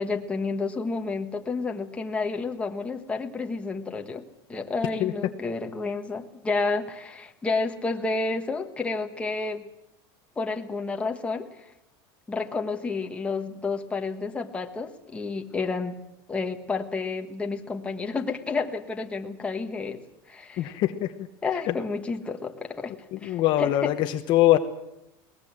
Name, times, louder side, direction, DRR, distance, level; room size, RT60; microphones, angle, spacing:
voice 1, 0.0-9.7 10.4-11.7 12.3-16.0 16.3-20.0 20.3-20.7 21.4-22.9 23.2-23.9, left 3 dB, 10° left, 3 dB, 1.5 m, -30 dB
voice 2, 20.6-21.1 23.1-24.6, left 14 dB, 40° left, 8 dB, 1.0 m, -22 dB
22.0 x 19.0 x 7.5 m, 0.88 s
supercardioid pair, 155°, 12 cm